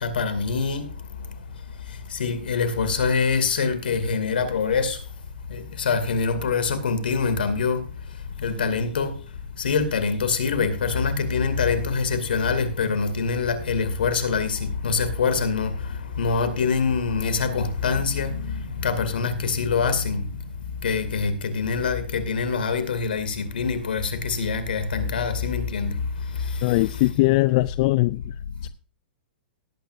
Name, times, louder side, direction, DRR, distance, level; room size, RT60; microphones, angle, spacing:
voice 1, 0.0-0.8 2.1-5.0 5.5-7.8 8.4-9.1 9.6-15.7 16.2-20.3 20.8-25.9, left 5 dB, 75° left, 2.4 m, -24 dB
voice 2, 26.6-28.3 28.6-28.7, left 20 dB, 45° left, 0.4 m, -21 dB
18.0 x 9.1 x 2.6 m
hypercardioid pair, 115°, 5 cm